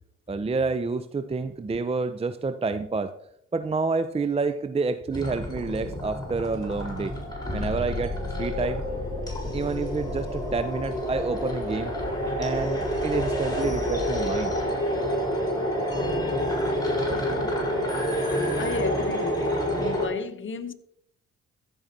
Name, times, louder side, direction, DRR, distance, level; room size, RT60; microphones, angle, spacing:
voice 1, 0.3-3.1 3.5-7.1 7.5-8.8 9.5-11.9 12.4-14.6 17.4-17.5, right 4 dB, 20° right, 0.6 m, -28 dB
sound 1, 5.1-20.1, equal, 10° left, 3.9 m, -28 dB
voice 2, 18.6-20.7, left 5 dB, 40° left, 1.0 m, -32 dB
14.5 x 5.4 x 4.1 m
hypercardioid pair, 50°, 31 cm